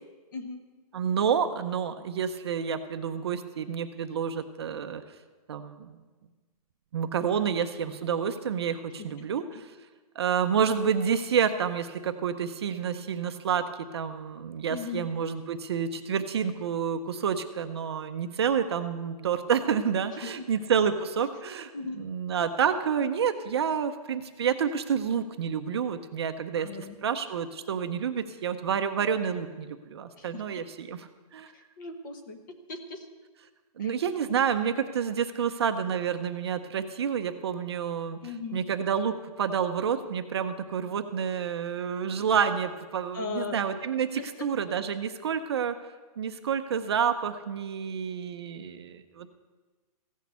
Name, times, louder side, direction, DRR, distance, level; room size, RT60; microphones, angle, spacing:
voice 1, 0.3-0.6 9.0-9.3 14.7-15.1 20.2-20.3 21.7-22.0 26.6-27.0 30.2-30.6 31.5-33.1 33.8-33.9 38.2-38.6 43.1-43.6 44.2-44.5, left 4 dB, 30° left, 6 dB, 1.0 m, -38 dB
voice 2, 0.9-5.0 5.5-5.9 6.9-9.7 10.1-13.6 13.9-31.5 33.8-38.2 38.5-45.8 46.2-49.3, right 7 dB, 40° right, 8 dB, 0.6 m, -29 dB
15.5 x 6.4 x 8.1 m, 1.3 s
hypercardioid pair, 180°, 20 cm